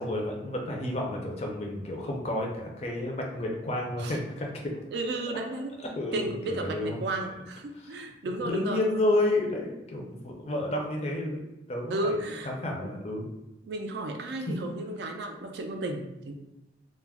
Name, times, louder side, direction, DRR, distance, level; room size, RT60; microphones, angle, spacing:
voice 1, 0.0-4.7 5.3-5.4 5.8-7.0 7.7-8.0 8.4-11.4 11.7-12.2 12.4-13.3, left 1 dB, 35° left, 0 dB, 0.4 m, -31 dB
voice 2, 4.9-5.8 6.1-8.8 11.9-12.5 13.7-16.3, right 2 dB, 60° right, 4 dB, 0.3 m, -33 dB
2.3 x 2.0 x 3.4 m, 0.95 s
head